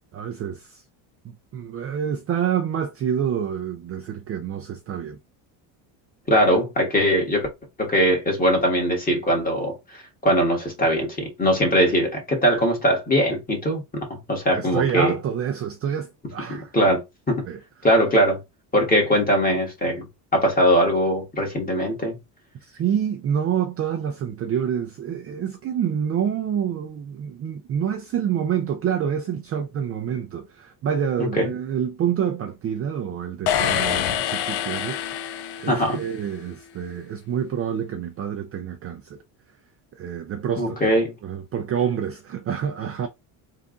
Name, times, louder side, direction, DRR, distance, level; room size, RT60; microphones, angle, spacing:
voice 1, 0.1-0.8 1.5-5.2 14.5-16.7 17.5-17.6 22.6-35.2 35.6-39.2 39.9-41.0 41.2-43.1, right 8 dB, 30° right, 0.4 m, -27 dB
voice 2, 6.3-7.5 7.8-9.8 10.2-13.8 14.1-15.1 16.7-17.0 17.3-17.4 17.8-18.4 18.7-20.1 20.3-22.1 31.2-31.5 35.7-36.0 40.6-41.1, equal, 20° left, 1.7 m, -21 dB
sound 1, 33.5-36.3, left 10 dB, 55° left, 0.6 m, -26 dB
3.6 x 2.5 x 3.8 m
cardioid pair, 125°, 48 cm